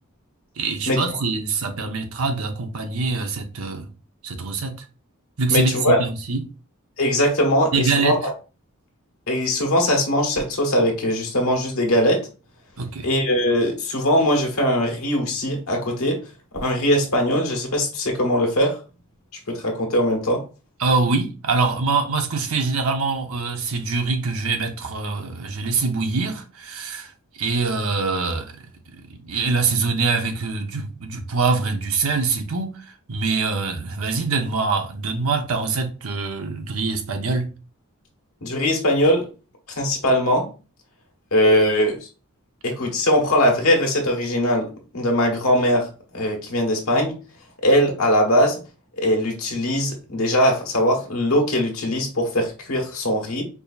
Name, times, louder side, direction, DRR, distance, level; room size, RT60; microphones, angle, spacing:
voice 1, 0.6-3.9 4.2-4.8 5.4-6.4 7.7-8.1 12.8-13.1 20.8-27.1 27.4-28.5 29.1-37.5, right 4 dB, 80° right, 0.8 m, -24 dB
voice 2, 5.5-6.0 7.0-8.3 9.3-12.2 13.0-16.2 16.6-18.8 19.5-20.4 38.4-39.3 39.8-40.5 41.3-42.0 42.6-44.7 44.9-45.9 46.1-47.1 47.6-48.6 49.0-53.4, equal, 90° left, 1.3 m, -20 dB
4.9 x 2.7 x 2.4 m
head